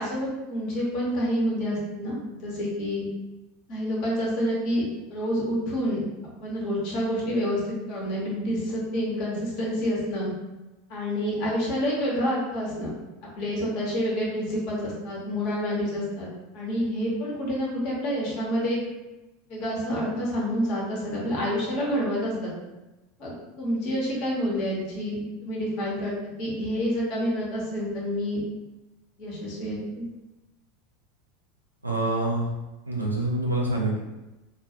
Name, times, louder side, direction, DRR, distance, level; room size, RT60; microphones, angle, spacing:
voice 1, 0.0-3.1 3.7-10.3 10.9-12.9 13.4-16.3 16.5-18.8 19.5-22.5 23.2-28.4 29.2-30.1, equal, 50° left, -4 dB, 0.9 m, -28 dB
voice 2, 31.8-32.5 32.8-34.0, right 2 dB, 90° right, -2 dB, 0.4 m, -26 dB
2.3 x 2.0 x 2.8 m, 1.0 s
figure-of-eight pair, 80°, 0 cm